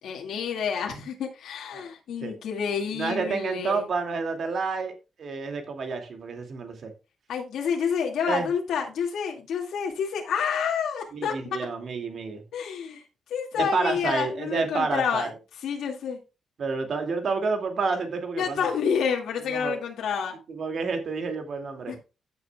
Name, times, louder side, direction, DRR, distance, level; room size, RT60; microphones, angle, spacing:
voice 1, 0.0-3.8 7.3-11.6 12.5-13.0 13.3-15.3 15.6-16.2 18.4-20.4 21.9-22.0, left 7 dB, 85° left, 0 dB, 2.1 m, -29 dB
voice 2, 2.9-6.9 8.3-8.5 11.1-12.4 13.6-15.3 16.6-18.7 19.5-19.8 20.5-21.9, right 4 dB, 50° right, 5 dB, 2.3 m, -29 dB
15.5 x 7.0 x 2.3 m, 0.30 s
wide cardioid pair, 150°, 0 cm